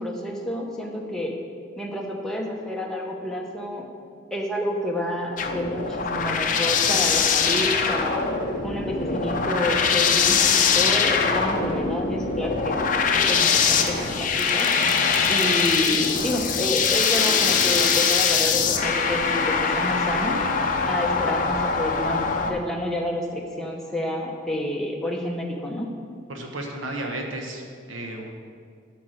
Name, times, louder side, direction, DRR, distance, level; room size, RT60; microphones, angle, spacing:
voice 1, 0.0-1.3 1.8-3.9 4.3-8.3 8.6-12.8 13.3-14.7 15.3-20.4 20.9-25.9, left 1 dB, 5° left, -2 dB, 0.9 m, -29 dB
sound 1, 5.4-22.5, left 5 dB, 40° left, 0.6 m, -22 dB
voice 2, 26.3-27.6 27.9-28.3, right 1 dB, 85° right, 2 dB, 1.1 m, -33 dB
8.5 x 5.9 x 6.4 m, 2.1 s
head